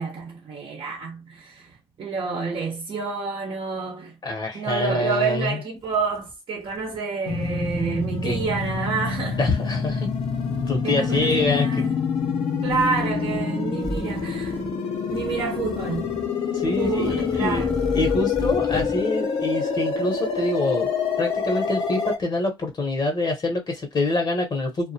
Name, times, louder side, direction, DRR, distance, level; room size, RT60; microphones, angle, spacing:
voice 1, 0.0-4.2 4.5-9.4 10.8-14.6 15.1-16.2 16.8-17.8, right 5 dB, 60° right, 0.7 m, -29 dB
voice 2, 4.2-5.6 8.2-8.4 9.4-10.1 10.7-11.7 16.5-17.6 17.9-20.9 21.2-24.9, left 2 dB, 50° left, 0.8 m, -25 dB
sound 1, 5.8-7.0 7.3-7.8 8.3-8.8 9.2-10.8 11.1-11.6 12.7-13.4 13.8-14.7 15.1-16.3 16.7-19.0, equal, 5° left, 0.4 m, -37 dB
sound 2, 7.3-22.2, left 5 dB, 85° left, 0.7 m, -26 dB
2.3 x 2.1 x 2.7 m
cardioid pair, 75°, 10 cm